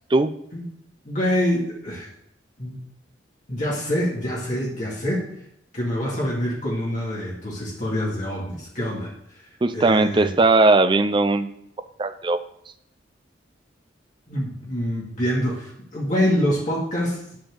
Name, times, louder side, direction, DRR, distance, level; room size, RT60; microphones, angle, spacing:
voice 1, 1.0-2.1 2.6-2.8 3.5-5.3 5.7-9.1 9.7-10.3 14.3-17.4, equal, 45° left, -5 dB, 2.1 m, -25 dB
voice 2, 9.6-11.5 12.0-12.4, right 3 dB, 25° right, 10 dB, 0.5 m, -18 dB
10.5 x 4.4 x 6.5 m, 0.77 s
head